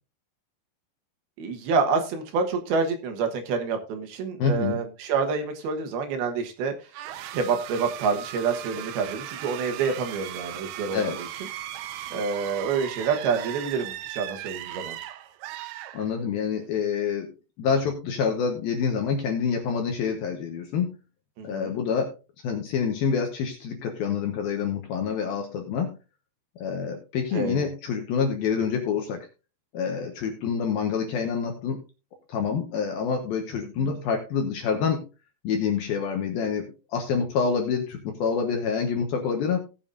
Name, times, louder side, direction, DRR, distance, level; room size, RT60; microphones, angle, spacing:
voice 1, 1.4-6.7 7.3-11.3 12.1-15.0 21.4-21.7 27.3-27.7 33.8-33.9, right 5 dB, 65° right, 5 dB, 2.9 m, -27 dB
voice 2, 4.4-4.8 10.9-11.2 15.9-17.3 17.6-20.9 21.4-22.1 22.4-25.9 26.6-29.3 29.7-31.8 32.3-35.0 35.4-39.6, left 6 dB, 70° left, 3 dB, 2.6 m, -27 dB
sound 1, 6.9-16.5, right 13 dB, 80° right, 2.3 m, -38 dB
18.5 x 7.1 x 2.6 m, 0.31 s
omnidirectional pair, 5.2 m